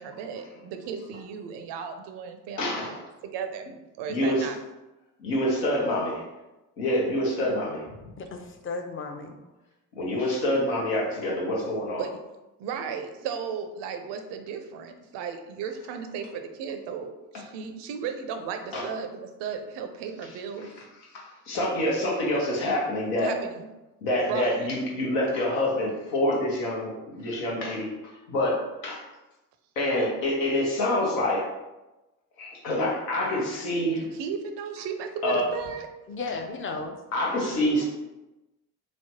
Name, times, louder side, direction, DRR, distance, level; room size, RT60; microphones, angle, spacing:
voice 1, 0.0-2.9 3.2-3.7 4.0-4.6 12.0-12.2 12.6-20.9 21.5-21.6 23.2-23.7 24.2-24.7 34.0-35.9, right 6 dB, 70° right, 6 dB, 0.5 m, -35 dB
voice 2, 2.6-3.0 4.1-4.5 5.2-6.2 6.8-7.8 10.0-12.0 18.7-18.9 21.1-23.3 24.0-29.0 29.8-31.5 32.4-34.0 35.2-35.5 37.1-37.8, left 1 dB, 85° left, -3 dB, 0.8 m, -26 dB
voice 3, 8.2-9.4 36.1-36.9, left 3 dB, 30° left, 4 dB, 0.5 m, -34 dB
3.1 x 2.0 x 2.8 m, 1.0 s
hypercardioid pair, 45°, 44 cm